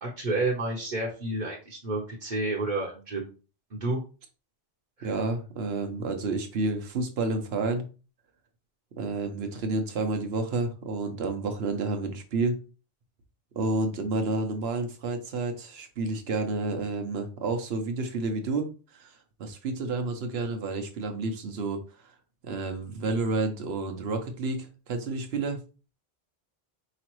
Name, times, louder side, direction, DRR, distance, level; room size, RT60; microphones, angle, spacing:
voice 1, 0.0-3.3 3.7-4.0 5.0-5.2, right 2 dB, 50° right, -3 dB, 0.9 m, -30 dB
voice 2, 5.0-7.9 9.0-12.6 13.6-18.7 18.9-21.8 22.4-25.6, right 3 dB, 75° right, 6 dB, 1.0 m, -30 dB
4.9 x 3.0 x 3.0 m, 0.35 s
omnidirectional pair, 1.1 m